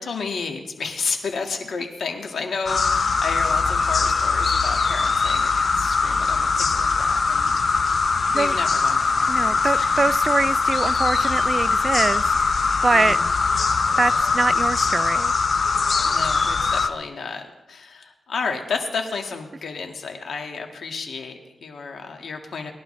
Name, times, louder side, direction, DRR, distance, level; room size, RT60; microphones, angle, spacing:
voice 1, 0.0-7.5 8.3-9.9 12.9-13.3 16.0-22.7, left 5 dB, 75° left, 3 dB, 1.7 m, -31 dB
sound 1, 2.7-16.9, left 4 dB, 55° left, 0.7 m, -21 dB
voice 2, 9.3-12.3 12.8-13.2 14.0-15.3, right 3 dB, 40° right, 15 dB, 0.4 m, -23 dB
20.0 x 11.5 x 3.2 m, 0.94 s
cardioid pair, 75°, 0 cm